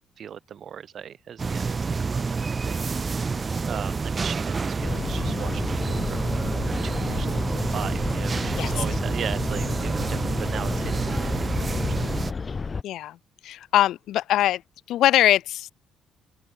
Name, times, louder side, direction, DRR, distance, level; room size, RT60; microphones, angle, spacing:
voice 1, 0.2-6.6 6.8-11.5 11.8-12.2, right 8 dB, 45° right, 3.7 m, -38 dB
sound 1, 1.4-12.3, right 4 dB, 20° right, 0.5 m, -28 dB
sound 2, 4.8-12.8, left 4 dB, 25° left, 2.7 m, -31 dB
voice 2, 12.8-13.2 13.4-14.6 14.9-15.7, left 13 dB, 70° left, 1.3 m, -22 dB
open air
cardioid pair, 165°, 0 cm